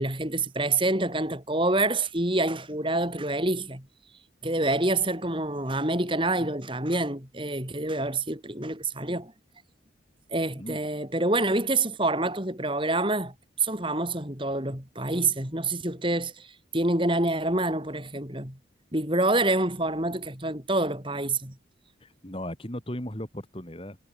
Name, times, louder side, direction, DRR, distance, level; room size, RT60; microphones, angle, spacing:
voice 1, 0.0-3.8 4.4-9.3 10.3-18.6 18.9-21.5, right 2 dB, 25° right, 5.1 m, -27 dB
voice 2, 22.0-24.0, left 1 dB, 30° left, 2.9 m, -36 dB
head